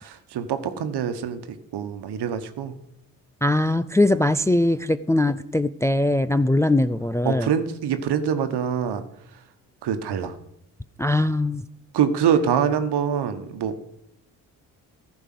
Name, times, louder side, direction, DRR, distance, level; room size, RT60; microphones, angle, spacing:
voice 1, 0.0-1.4 1.7-2.7 7.2-9.0 9.8-10.4 11.9-13.8, right 8 dB, 60° right, 10 dB, 1.3 m, -24 dB
voice 2, 3.4-7.5 11.0-11.6, left 1 dB, 5° left, 12 dB, 0.5 m, -21 dB
15.0 x 5.3 x 7.7 m, 0.82 s
hypercardioid pair, 45°, 45 cm